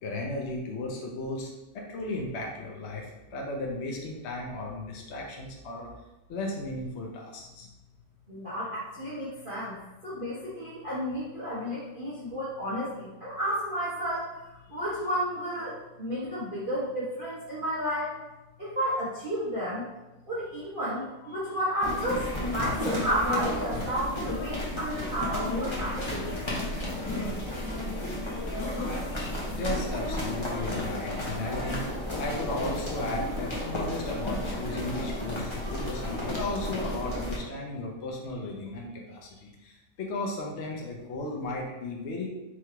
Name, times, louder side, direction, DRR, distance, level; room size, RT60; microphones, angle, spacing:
voice 1, 0.0-5.9 6.3-7.7 21.2-21.3 29.5-31.9 32.2-42.3, left 2 dB, 55° left, -1 dB, 0.8 m, -35 dB
voice 2, 8.3-9.8 10.0-14.3 14.7-18.1 18.6-19.9 20.3-26.4, equal, 35° right, -11 dB, 1.1 m, -32 dB
sound 1, 21.8-37.4, left 1 dB, 25° left, 0.7 m, -32 dB
3.7 x 3.1 x 4.5 m, 1.1 s
omnidirectional pair, 1.8 m